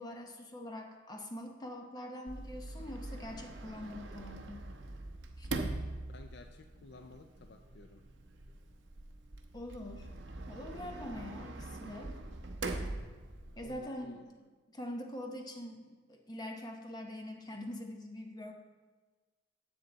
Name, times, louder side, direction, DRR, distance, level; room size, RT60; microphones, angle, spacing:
voice 1, 0.0-4.7 5.4-5.5 9.5-10.1 10.5-12.1 13.6-14.4 14.7-18.5, left 1 dB, 20° left, 3 dB, 1.0 m, -44 dB
Sliding door, 2.3-13.8, right 2 dB, 65° right, 0.8 m, -43 dB
voice 2, 6.1-8.0 11.2-11.5 13.6-14.2, left 3 dB, 55° left, 6 dB, 0.4 m, -54 dB
10.0 x 7.7 x 3.9 m, 1.3 s
head